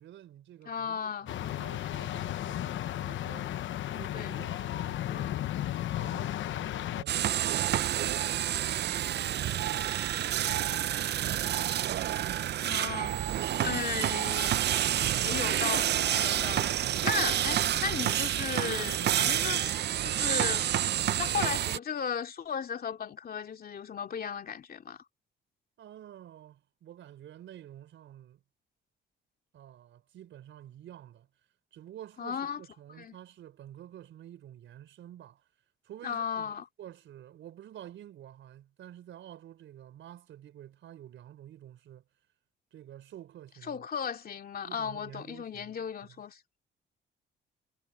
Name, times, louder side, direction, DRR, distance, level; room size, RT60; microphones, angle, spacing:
voice 1, 0.0-3.6 3.9-5.4 5.9-11.4 12.1-13.9 25.8-28.4 29.5-31.3 31.7-35.5 35.8-42.1 42.7-43.8 44.6-46.2, right 11 dB, 75° right, 4.7 m, -50 dB
voice 2, 0.7-1.3 3.9-4.5 12.6-13.2 13.6-14.6 15.2-16.7 17.0-20.7 21.2-25.0 32.2-32.6 33.0-33.1 36.0-36.6 43.7-46.4, left 7 dB, 50° left, 2.6 m, -35 dB
sound 1, 1.3-7.0, left 13 dB, 70° left, 1.0 m, -34 dB
sound 2, 7.1-21.8, right 11 dB, 60° right, 0.6 m, -29 dB
cardioid pair, 90°, 20 cm